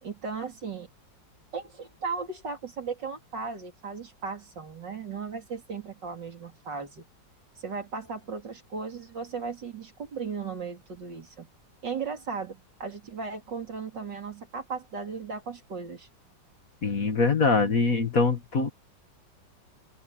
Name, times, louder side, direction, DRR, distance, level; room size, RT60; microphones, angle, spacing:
voice 1, 0.0-0.9 1.5-7.0 7.6-11.5 11.8-16.1, right 5 dB, 65° right, 3.7 m, -36 dB
voice 2, 16.8-18.7, left 4 dB, 45° left, 2.1 m, -23 dB
open air
omnidirectional pair, 2.0 m